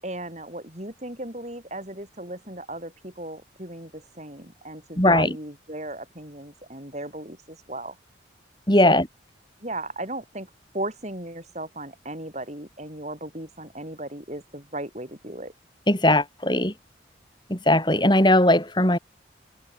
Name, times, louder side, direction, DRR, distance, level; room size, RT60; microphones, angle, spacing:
voice 1, 0.0-8.0 8.8-9.0 9.6-10.5 10.7-15.5, right 1 dB, 40° right, 7.7 m, -36 dB
voice 2, 5.0-5.4 8.7-9.1 15.9-16.7 17.5-19.0, left 1 dB, 25° left, 7.3 m, -19 dB
head